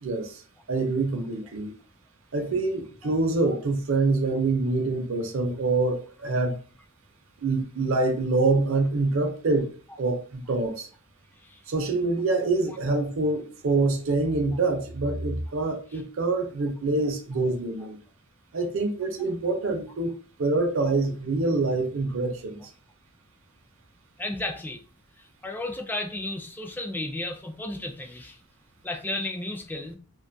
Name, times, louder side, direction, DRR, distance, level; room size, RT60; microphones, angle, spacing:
voice 1, 0.0-0.4 0.7-1.7 2.3-6.6 7.4-10.9 11.7-18.0 18.5-20.1 20.4-22.7, right 3 dB, 60° right, 0.5 m, -26 dB
voice 2, 24.2-24.8 25.2-28.4 28.8-29.9, left 2 dB, 10° left, 0.3 m, -33 dB
2.5 x 2.3 x 2.6 m
head